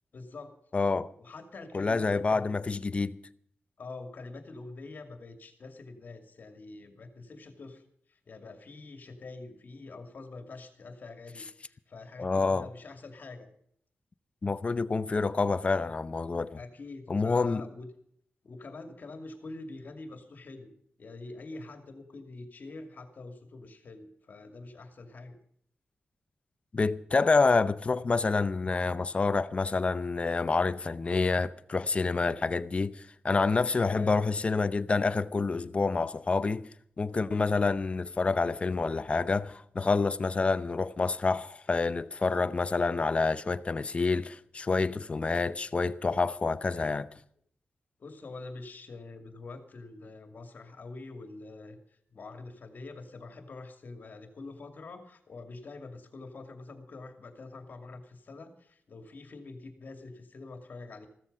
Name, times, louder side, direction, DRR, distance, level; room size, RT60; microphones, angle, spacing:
voice 1, 0.1-0.5 1.2-2.5 3.8-7.8 8.1-13.5 16.5-17.9 18.4-20.7 21.0-25.4 33.8-34.2 48.0-51.8 52.1-61.1, left 3 dB, 55° left, 2.5 m, -45 dB
voice 2, 0.7-1.1 1.7-3.2 12.2-12.7 14.4-16.6 17.1-17.6 26.7-36.7 37.0-47.1, left 4 dB, 30° left, 0.7 m, -28 dB
15.5 x 13.5 x 5.5 m
wide cardioid pair, 145°, 4 cm